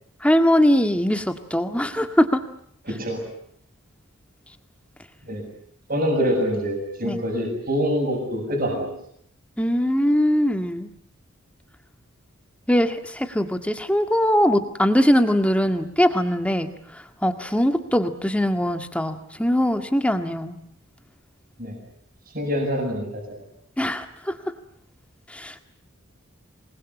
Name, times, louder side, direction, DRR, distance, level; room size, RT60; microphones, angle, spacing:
voice 1, 0.2-2.4 7.0-7.2 9.6-10.9 12.7-16.7 17.2-20.6 23.8-24.1 25.4-25.6, equal, 5° left, 7 dB, 1.8 m, -21 dB
voice 2, 2.8-3.2 5.3-5.4 5.9-8.9 21.6-21.8 22.3-23.2, equal, 45° right, 2 dB, 7.9 m, -25 dB
27.5 x 21.5 x 9.9 m, 0.69 s
head